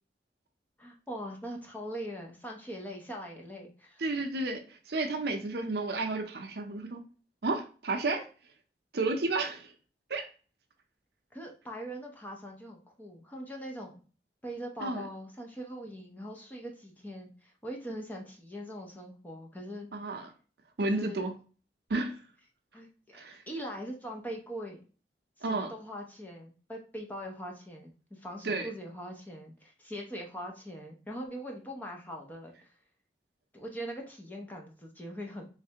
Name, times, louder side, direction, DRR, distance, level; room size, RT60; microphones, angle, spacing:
voice 1, 0.8-4.0 11.3-14.0 14.4-19.9 20.8-21.3 22.7-24.8 25.5-32.8 33.5-35.5, equal, 10° left, 0 dB, 0.6 m, -41 dB
voice 2, 4.0-4.6 4.9-7.0 7.4-8.3 8.9-9.7 10.1-10.3 14.8-15.0 19.9-20.3 20.8-21.3 21.9-22.2 23.1-23.4 25.4-25.7 28.4-28.7, right 3 dB, 60° right, 5 dB, 0.6 m, -31 dB
3.2 x 3.2 x 2.8 m, 0.38 s
head